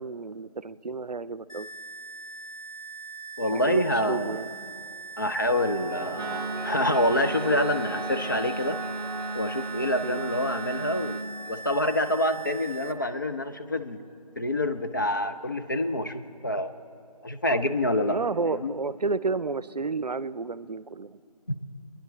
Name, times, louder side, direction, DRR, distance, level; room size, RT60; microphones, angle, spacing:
voice 1, 0.0-1.7 3.5-4.5 10.0-10.2 18.1-21.2, right 4 dB, 85° right, 17 dB, 0.5 m, -31 dB
sound 1, 1.5-12.9, right 5 dB, 60° left, 1.7 m, -41 dB
voice 2, 3.4-4.4 5.2-8.8 9.3-11.2 11.5-14.0 14.4-16.7 17.2-18.2 18.4-18.7 21.5-21.6, left 1 dB, 30° left, 7 dB, 0.4 m, -27 dB
sound 2, 5.5-13.0, right 1 dB, 5° left, 0.8 m, -40 dB
Wind instrument woodwind instrument, 6.1-11.3, right 3 dB, 35° right, 0.8 m, -35 dB
21.5 x 10.5 x 4.3 m, 2.6 s
figure-of-eight pair, 160°, 20 cm